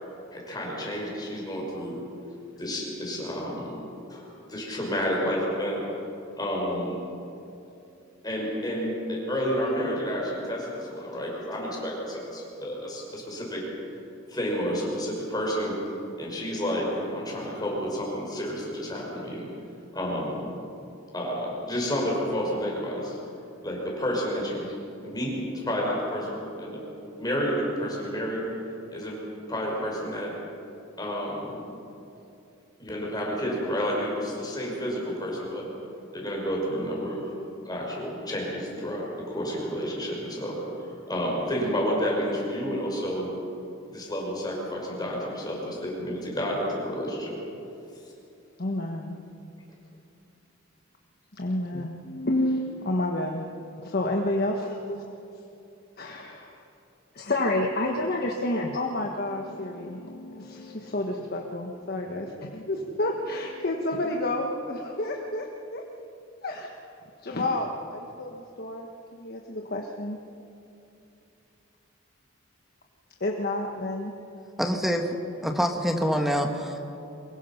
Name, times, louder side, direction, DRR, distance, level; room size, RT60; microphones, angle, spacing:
voice 1, 0.3-2.0 2.6-3.8 4.1-5.8 6.4-7.0 8.2-13.6 14.3-15.8 16.2-19.5 19.9-20.5 21.1-23.2 23.6-24.7 25.0-26.8 27.2-28.4 28.9-29.2 29.5-30.3 31.0-31.6 32.8-35.7 36.1-37.2 37.7-43.3 43.9-47.4, equal, 20° left, -3 dB, 5.7 m, -30 dB
voice 2, 48.6-49.2 51.3-53.4 53.8-55.0 56.0-56.6 57.1-65.8 66.4-66.7 67.2-68.9 69.1-70.2 73.2-74.1, left 1 dB, 50° left, 1 dB, 1.3 m, -30 dB
voice 3, 74.6-75.2 75.4-76.8, equal, ahead, 3 dB, 1.4 m, -26 dB
24.0 x 21.5 x 5.9 m, 2.7 s
head